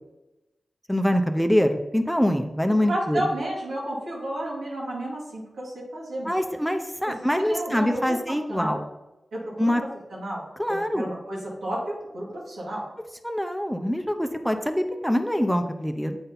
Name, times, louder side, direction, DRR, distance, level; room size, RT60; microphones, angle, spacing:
voice 1, 0.9-3.2 6.2-8.8 9.6-9.8 10.6-11.1 13.2-16.2, equal, ahead, 6 dB, 0.7 m, -24 dB
voice 2, 2.9-6.3 7.0-7.1 7.5-8.8 9.3-10.4 10.7-12.8, right 1 dB, 90° right, -4 dB, 2.1 m, -32 dB
7.9 x 4.1 x 3.9 m, 0.98 s
cardioid pair, 45°, 0 cm